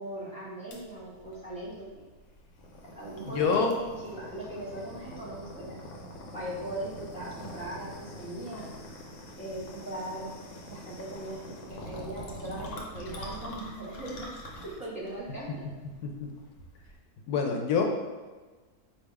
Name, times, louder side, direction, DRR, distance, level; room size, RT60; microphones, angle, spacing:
voice 1, 0.0-2.0 2.9-5.8 6.3-8.7 9.4-10.3 10.7-11.4 11.8-14.3 14.6-15.6, right 1 dB, 5° right, -7 dB, 1.0 m, -39 dB
sound 1, 0.7-17.0, equal, 60° left, 1.0 m, -44 dB
voice 2, 3.3-3.8 16.0-16.3 17.3-17.8, left 5 dB, 80° left, 2 dB, 1.1 m, -26 dB
3.5 x 2.8 x 4.5 m, 1.3 s
omnidirectional pair, 1.6 m